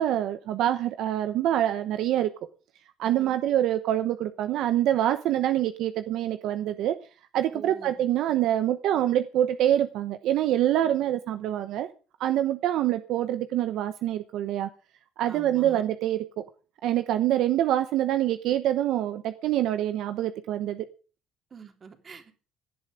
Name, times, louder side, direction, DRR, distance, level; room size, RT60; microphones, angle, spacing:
voice 1, 0.0-2.3 3.0-7.0 7.3-11.9 12.2-14.7 15.2-16.4 16.8-20.9, right 12 dB, 65° right, 10 dB, 1.0 m, -25 dB
voice 2, 3.0-3.4 7.5-8.0 15.3-15.8 21.5-22.4, right 5 dB, 30° right, 6 dB, 3.3 m, -45 dB
17.5 x 11.0 x 5.1 m, 0.37 s
cardioid pair, 130°, 0 cm